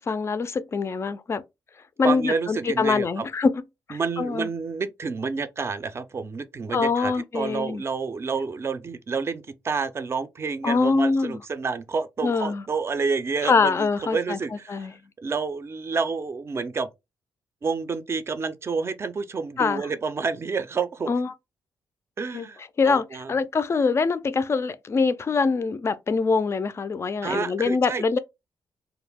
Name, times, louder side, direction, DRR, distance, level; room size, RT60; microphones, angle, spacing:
voice 1, 0.1-1.4 2.0-3.5 3.9-4.5 6.7-7.8 10.6-11.4 12.2-12.6 13.4-14.4 14.7-14.9 19.6-19.8 21.1-21.3 22.3-22.5 22.8-28.2, left 4 dB, 35° left, 0.3 m, -24 dB
voice 2, 2.0-3.2 3.9-14.9 15.2-16.9 17.6-21.1 22.2-23.3 27.2-28.2, right 4 dB, 35° right, 0.4 m, -29 dB
2.3 x 2.0 x 3.3 m
cardioid pair, 85°, 8 cm